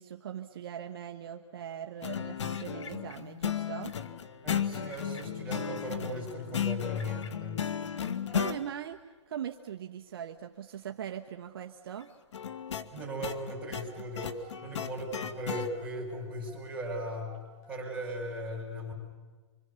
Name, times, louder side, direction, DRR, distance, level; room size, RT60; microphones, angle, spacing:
voice 1, 0.0-3.9 8.3-9.0 9.3-12.1, right 9 dB, 50° right, 5 dB, 1.0 m, -40 dB
sound 1, 2.0-8.6 12.3-15.7, left 8 dB, 65° left, 1.4 m, -35 dB
voice 2, 4.4-7.7 12.9-17.4 17.7-18.9, equal, 5° right, -4 dB, 6.0 m, -37 dB
sound 2, 13.9-15.5 15.7-17.8, right 3 dB, 30° left, 6.7 m, -56 dB
25.5 x 25.5 x 7.0 m, 1.3 s
hypercardioid pair, 165°, 16 cm